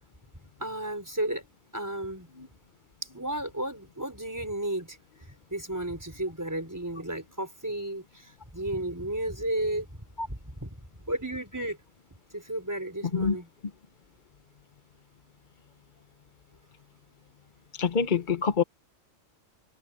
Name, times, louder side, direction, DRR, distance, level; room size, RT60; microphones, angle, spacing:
voice 1, 0.6-1.4 1.7-2.3 3.0-10.8 11.0-11.8 12.3-13.5, right 1 dB, 15° right, 4.6 m, -33 dB
voice 2, 17.7-18.6, left 6 dB, 40° left, 0.9 m, -25 dB
open air
omnidirectional pair, 1.4 m